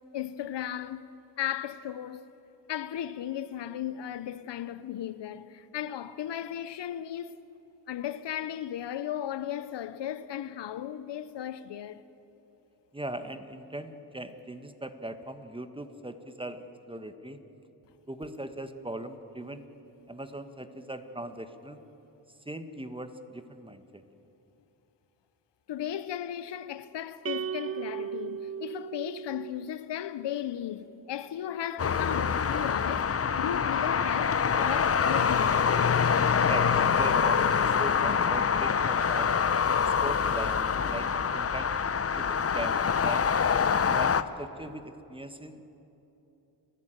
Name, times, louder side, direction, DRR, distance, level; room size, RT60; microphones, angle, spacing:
voice 1, 0.1-1.1 1.4-2.3 2.7-7.4 7.9-12.0 25.7-35.9, left 10 dB, 75° left, 0.8 m, -36 dB
voice 2, 12.9-17.4 18.1-19.7 20.1-21.8 22.4-24.0 36.4-39.3 39.8-41.7 42.2-43.3 43.8-45.6, right 1 dB, 10° right, 1.4 m, -40 dB
sound 1, 27.2-29.7, right 8 dB, 35° right, 0.4 m, -36 dB
sound 2, 31.8-44.2, left 6 dB, 35° left, 0.7 m, -25 dB
29.5 x 11.0 x 9.0 m
cardioid pair, 80°, 42 cm